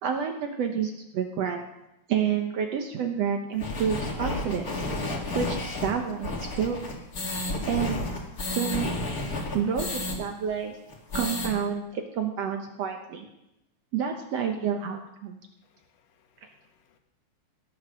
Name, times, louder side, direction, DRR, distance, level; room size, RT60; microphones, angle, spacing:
voice 1, 0.0-1.6 2.1-4.7 5.3-6.8 7.6-8.0 8.5-8.9 9.5-10.8 11.1-13.2 13.9-15.4, right 7 dB, 70° right, 4 dB, 1.6 m, -29 dB
sound 1, 3.6-10.2 10.5-10.6 10.9-11.5, left 2 dB, 30° left, 1.9 m, -31 dB
voice 2, 15.6-17.0, left 7 dB, 75° left, 5 dB, 3.0 m, -67 dB
18.5 x 8.1 x 6.3 m, 0.89 s
omnidirectional pair, 4.0 m